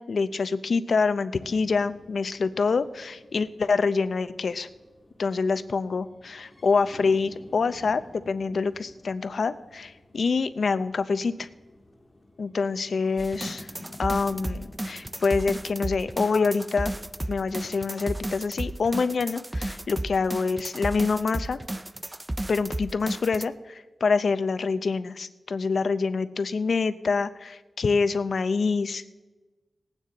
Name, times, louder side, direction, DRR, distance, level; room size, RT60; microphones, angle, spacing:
voice 1, 0.0-4.7 5.2-11.5 12.4-13.7 14.0-16.9 17.3-21.6 22.5-29.2, left 4 dB, 70° left, 13 dB, 0.5 m, -26 dB
sound 1, 1.4-19.1, left 1 dB, 25° left, 1.4 m, -51 dB
sound 2, 13.2-23.5, right 1 dB, 15° right, 0.4 m, -33 dB
19.0 x 9.1 x 4.0 m, 1.2 s
wide cardioid pair, 85°, 0 cm